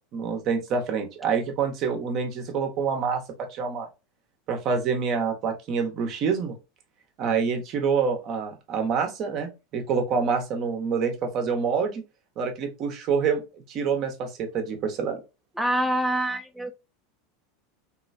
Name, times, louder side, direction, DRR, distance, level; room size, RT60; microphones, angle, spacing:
voice 1, 0.1-3.9 4.5-6.6 7.2-12.0 12.4-15.2, right 5 dB, 45° right, 0.8 m, -27 dB
voice 2, 15.6-16.7, right 1 dB, ahead, 0.3 m, -25 dB
3.0 x 2.6 x 2.6 m
hypercardioid pair, 85°, 0 cm